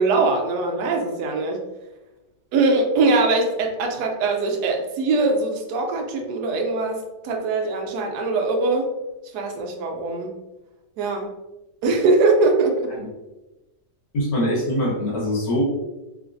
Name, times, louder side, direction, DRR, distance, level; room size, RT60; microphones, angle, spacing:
voice 1, 0.0-1.6 2.5-8.9 9.3-10.3 11.0-11.3 11.8-12.9, right 3 dB, 75° right, 2 dB, 1.1 m, -22 dB
voice 2, 14.1-15.6, left 1 dB, 80° left, -7 dB, 2.0 m, -23 dB
3.8 x 2.5 x 2.5 m, 1.0 s
omnidirectional pair, 1.8 m